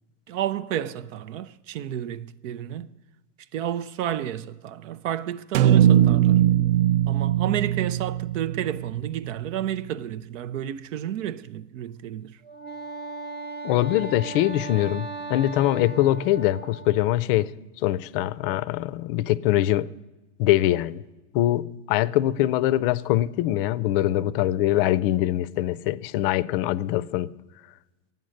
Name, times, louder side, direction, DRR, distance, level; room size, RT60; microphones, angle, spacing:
voice 1, 0.3-2.9 3.5-6.4 7.1-12.4, right 11 dB, 90° right, 0.6 m, -31 dB
sound 1, 5.5-9.8, right 11 dB, 50° right, 0.4 m, -21 dB
Wind instrument woodwind instrument, 12.4-17.1, right 3 dB, 25° right, 0.8 m, -37 dB
voice 2, 13.6-17.5 17.8-19.9 20.4-21.0 21.3-27.3, left 14 dB, 50° left, 0.4 m, -23 dB
12.0 x 9.3 x 6.4 m
supercardioid pair, 150°, 37 cm